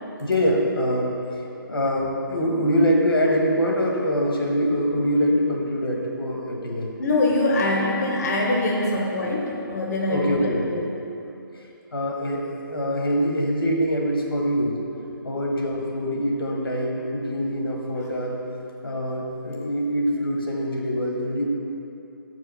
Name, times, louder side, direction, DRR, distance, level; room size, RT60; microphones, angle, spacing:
voice 1, 0.2-1.2 1.7-6.9 10.1-10.6 11.9-14.8 15.2-18.4 18.8-21.4, equal, 90° left, 0 dB, 1.5 m, -24 dB
voice 2, 7.0-10.8, left 2 dB, 45° left, -1 dB, 0.8 m, -23 dB
6.2 x 4.8 x 6.0 m, 2.7 s
hypercardioid pair, 155°, 12 cm